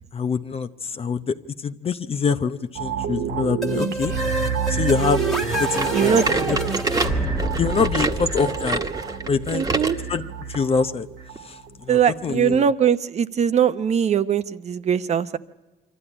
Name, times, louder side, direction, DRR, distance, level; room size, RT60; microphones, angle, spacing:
voice 1, 0.1-1.3 1.6-4.1 4.7-5.2 5.6-6.6 7.6-8.8 9.3-9.7 10.1-10.2 10.5-11.1 11.4-11.6 11.9-12.6, left 5 dB, 35° left, 9 dB, 0.7 m, -24 dB
sound 1, 2.7-12.1 12.4-12.5, right 7 dB, 75° right, 1.7 m, -29 dB
sound 2, 3.6-9.3, equal, ahead, 1.5 m, -29 dB
sound 3, 5.8-10.0 10.5-10.7 11.4-11.5 12.3-12.4, right 3 dB, 20° right, 1.4 m, -27 dB
voice 2, 5.9-6.3 9.5-10.0 11.9-15.4, right 8 dB, 40° right, 12 dB, 0.8 m, -21 dB
24.5 x 14.0 x 10.0 m, 1.2 s
cardioid pair, 110°, 17 cm